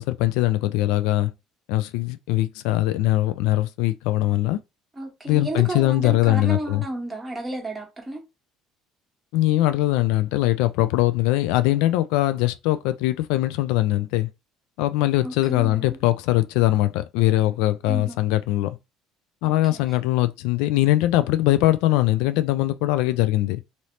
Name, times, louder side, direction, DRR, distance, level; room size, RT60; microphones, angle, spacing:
voice 1, 0.0-1.3 1.7-4.6 5.3-6.8 9.3-14.3 14.8-18.8 19.4-23.6, left 16 dB, 85° left, 0.3 m, -21 dB
voice 2, 5.0-8.2 15.2-16.0 17.9-18.2 19.4-19.8, right 1 dB, 10° right, 1.3 m, -32 dB
3.1 x 2.7 x 2.9 m
cardioid pair, 115°, 0 cm